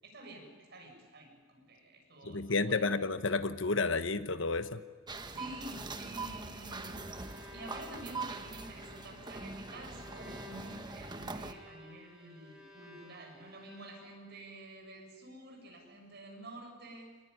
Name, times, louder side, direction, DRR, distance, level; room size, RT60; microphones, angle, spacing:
voice 1, 0.0-2.9 5.2-7.2 7.5-17.1, right 1 dB, 55° right, 1 dB, 7.0 m, -49 dB
voice 2, 2.2-4.8, left 3 dB, 75° left, 11 dB, 1.2 m, -31 dB
sound 1, 5.1-11.5, right 3 dB, 20° right, 1.2 m, -43 dB
Bowed string instrument, 6.7-14.5, left 2 dB, 5° right, 5.7 m, -55 dB
24.5 x 20.0 x 9.9 m, 1.6 s
head